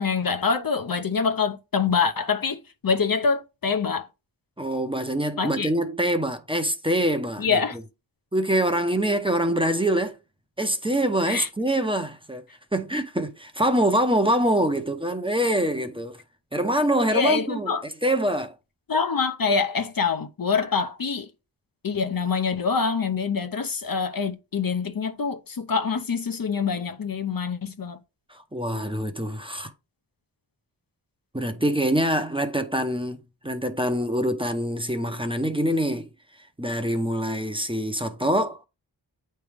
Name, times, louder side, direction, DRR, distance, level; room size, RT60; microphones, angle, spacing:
voice 1, 0.0-4.1 5.4-5.7 7.4-7.8 11.3-11.5 17.1-17.8 18.9-21.3 21.8-28.0, left 5 dB, 50° left, 0.7 m, -25 dB
voice 2, 4.6-7.6 8.3-10.2 10.6-12.4 12.7-16.2 16.5-18.5 28.3-29.7 31.3-36.1 36.6-38.6, right 1 dB, 10° right, 0.8 m, -25 dB
8.3 x 3.3 x 3.4 m
wide cardioid pair, 50°, 44 cm